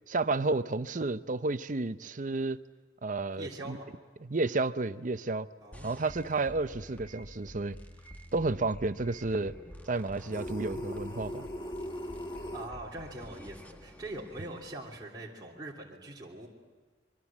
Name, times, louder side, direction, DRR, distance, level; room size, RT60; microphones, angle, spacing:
voice 1, 0.0-2.6 3.0-3.8 4.2-5.5 5.8-7.8 8.3-9.5 9.9-11.5, right 3 dB, 50° right, 12 dB, 0.7 m, -31 dB
voice 2, 3.3-3.9 5.6-6.0 12.5-16.5, right 2 dB, 25° right, -4 dB, 3.1 m, -42 dB
sound 1, 5.7-14.7, equal, 10° left, 1.3 m, -49 dB
sound 2, 10.3-12.7, left 1 dB, 30° left, 1.5 m, -39 dB
26.0 x 23.0 x 7.4 m, 1.4 s
head